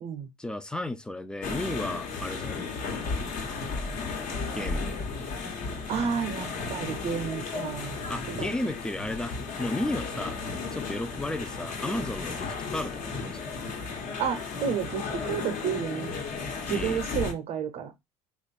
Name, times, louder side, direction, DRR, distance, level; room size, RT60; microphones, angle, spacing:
voice 1, 0.4-2.7 4.5-4.9 8.1-10.4 10.7-13.5 16.7-17.0, left 1 dB, 5° left, 0.5 m, -34 dB
sound 1, 1.4-17.3, left 4 dB, 55° left, 1.2 m, -34 dB
voice 2, 5.9-8.0 8.3-8.5 14.2-16.1 16.7-17.9, right 7 dB, 55° right, 0.7 m, -31 dB
3.0 x 2.4 x 4.2 m
hypercardioid pair, 75°, 16 cm